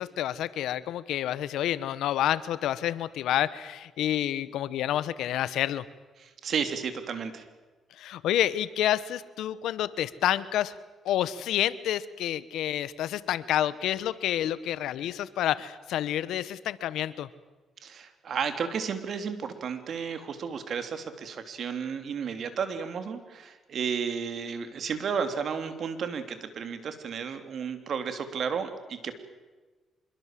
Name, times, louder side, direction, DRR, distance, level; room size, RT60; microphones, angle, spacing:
voice 1, 0.0-5.8 8.0-10.7 11.0-17.3, left 12 dB, 85° left, 16 dB, 1.1 m, -29 dB
voice 2, 6.2-7.4 17.8-29.1, right 6 dB, 60° right, 8 dB, 3.2 m, -33 dB
26.0 x 22.5 x 7.7 m, 1.3 s
cardioid pair, 90°, 0 cm